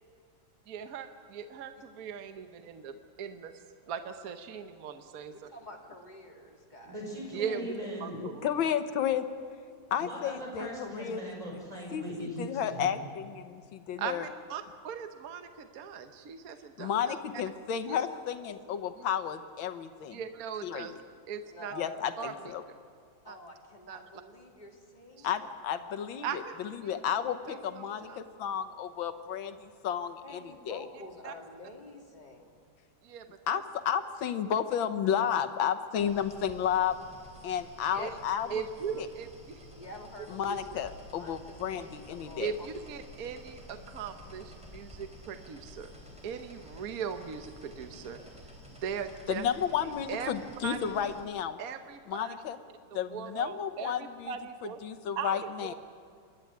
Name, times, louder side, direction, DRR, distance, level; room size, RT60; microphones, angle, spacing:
voice 1, 0.7-3.6 3.9-5.3 7.3-7.6 8.0-8.5 14.0-17.2 17.9-18.0 20.1-21.7 22.2-22.3 23.3-23.4 23.9-24.0 25.2-25.3 26.2-26.6 26.8-27.0 27.5-27.6 28.1-28.2 31.2-31.3 33.0-33.6 38.0-38.1 38.5-39.6 40.5-40.8 42.4-45.9 46.2-48.2 48.8-49.4 49.8-50.3 50.6-50.9 51.6-52.4 52.9-54.8 55.2-55.7, right 7 dB, 55° right, 8 dB, 1.3 m, -39 dB
voice 2, 5.3-7.1 7.3-7.7 18.1-18.4 21.5-22.5 23.2-25.5 27.2-28.1 30.2-32.6 36.8-36.9 37.9-38.1 38.4-38.5 39.7-40.6 41.2-42.7, left 1 dB, 20° left, 0 dB, 2.5 m, -49 dB
voice 3, 6.8-8.2 10.0-13.0, equal, 20° right, -1 dB, 5.5 m, -40 dB
voice 4, 8.2-9.3 9.9-11.2 11.9-14.3 16.8-20.2 20.6-21.0 21.8-22.6 25.2-27.4 27.6-30.4 30.7-30.8 33.5-37.0 37.4-38.7 39.0-39.1 40.3-42.5 49.3-51.6 52.1-52.6 52.9-54.3 54.6-55.7, left 8 dB, 90° left, 10 dB, 1.8 m, -32 dB
sound 1, 36.0-51.2, left 1 dB, 5° right, 3.7 m, -51 dB
27.0 x 11.5 x 9.5 m, 2.3 s
omnidirectional pair, 2.1 m